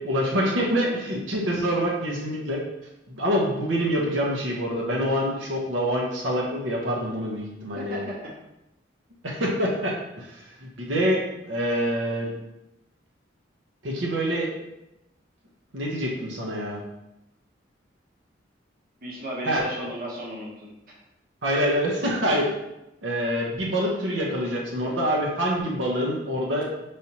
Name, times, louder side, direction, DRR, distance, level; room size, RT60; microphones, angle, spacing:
voice 1, 0.0-2.6 3.1-8.1 9.2-10.5 10.8-12.3 13.8-14.5 15.7-16.8 19.4-19.6 21.4-22.5 23.0-26.9, equal, 80° right, -3 dB, 0.9 m, -26 dB
voice 2, 7.8-8.3 19.0-21.0, equal, 50° right, -4 dB, 1.0 m, -35 dB
5.5 x 3.3 x 2.9 m, 0.89 s
head